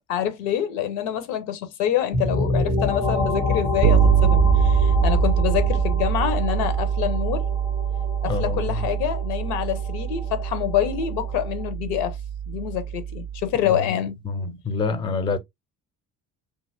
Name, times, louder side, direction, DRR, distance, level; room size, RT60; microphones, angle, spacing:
voice 1, 0.1-7.5 8.2-12.2 12.5-14.1, left 10 dB, 70° left, 0.7 m, -26 dB
sound 1, 2.1-11.7, left 3 dB, 85° left, 1.3 m, -28 dB
Bass guitar, 3.8-13.5, right 9 dB, 50° right, 0.4 m, -23 dB
voice 2, 8.2-8.9 13.7-13.8 14.3-15.4, left 4 dB, 10° left, 0.4 m, -27 dB
2.7 x 2.6 x 2.4 m
figure-of-eight pair, 50°, 47 cm